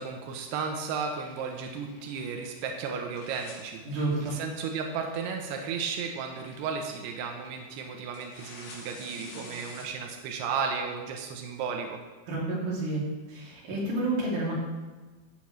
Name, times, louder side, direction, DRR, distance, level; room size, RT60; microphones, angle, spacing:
voice 1, 0.0-3.8 4.2-12.0, right 5 dB, 90° right, 3 dB, 2.3 m, -34 dB
sound 1, 1.0-2.8 3.1-9.9, left 2 dB, 70° left, 5.6 m, -50 dB
voice 2, 3.9-4.4 12.3-13.0 13.3-14.5, right 2 dB, 45° right, -6 dB, 3.6 m, -30 dB
14.0 x 7.5 x 3.2 m, 1.3 s
omnidirectional pair, 5.7 m